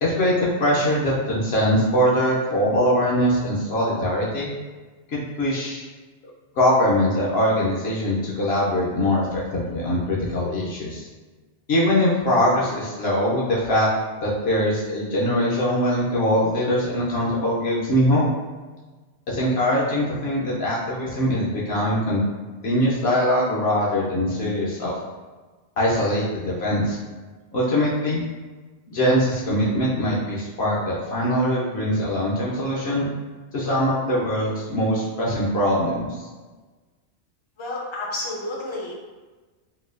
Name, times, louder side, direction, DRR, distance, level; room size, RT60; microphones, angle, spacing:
voice 1, 0.0-4.5 5.1-5.8 6.6-11.1 11.7-13.9 14.2-18.3 19.3-22.2 22.6-24.9 25.8-27.0 27.5-28.2 28.9-33.1 33.5-36.3, equal, 65° left, -6 dB, 0.8 m, -22 dB
voice 2, 37.6-39.0, left 2 dB, 40° left, -3 dB, 0.4 m, -30 dB
4.0 x 2.2 x 2.4 m, 1.3 s
omnidirectional pair, 1.2 m